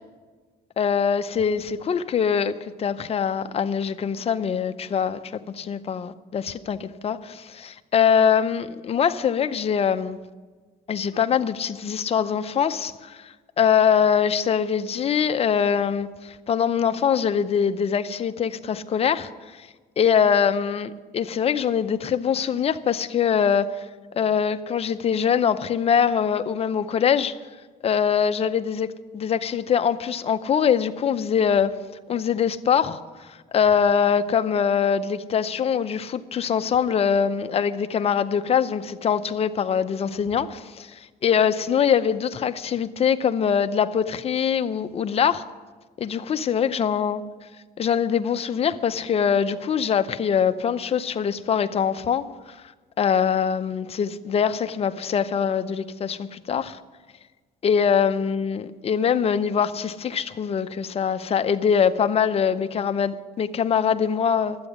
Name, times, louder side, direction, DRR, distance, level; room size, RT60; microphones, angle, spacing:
voice 1, 0.8-10.2 10.9-13.3 13.6-19.3 19.6-19.7 20.0-23.7 24.2-27.3 27.8-28.9 29.1-31.7 32.1-33.0 33.5-40.9 41.2-45.4 46.0-47.2 47.8-52.3 53.0-56.8 57.6-64.6, left 7 dB, 35° left, 0.7 m, -23 dB
12.0 x 8.0 x 9.9 m
cardioid pair, 110°, 17 cm